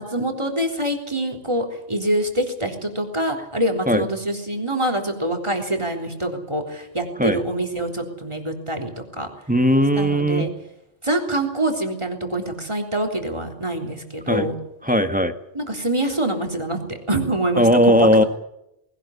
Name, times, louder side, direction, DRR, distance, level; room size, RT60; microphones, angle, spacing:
voice 1, 0.0-9.3 10.0-10.5 11.0-14.6 15.6-18.3, right 1 dB, 25° right, 3 dB, 3.7 m, -25 dB
voice 2, 9.5-10.5 14.3-14.5 14.8-15.3 17.6-18.2, equal, 5° right, 8 dB, 1.4 m, -17 dB
20.5 x 18.0 x 8.3 m, 0.83 s
omnidirectional pair, 1.2 m